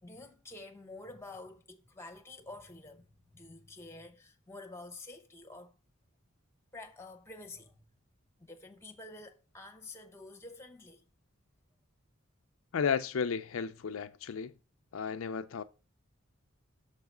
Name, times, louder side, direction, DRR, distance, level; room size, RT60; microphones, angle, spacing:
voice 1, 0.0-5.7 6.7-7.8 8.4-11.0, left 2 dB, 10° left, 0.9 m, -49 dB
voice 2, 12.7-14.5 14.9-15.6, left 6 dB, 75° left, 0.4 m, -33 dB
6.6 x 4.8 x 5.4 m
head